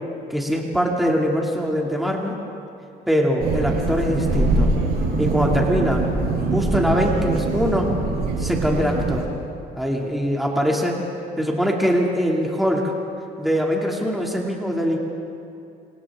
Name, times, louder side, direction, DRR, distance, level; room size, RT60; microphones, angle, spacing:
voice 1, 0.3-2.4 3.1-4.7 5.2-6.0 6.5-7.9 8.4-9.3 9.8-11.0 11.4-12.9 13.4-15.0, equal, ahead, -2 dB, 2.6 m, -22 dB
sound 1, 3.4-9.2, right 3 dB, 65° right, 5.9 m, -23 dB
29.0 x 25.5 x 3.7 m, 2.6 s
cardioid pair, 110°, 17 cm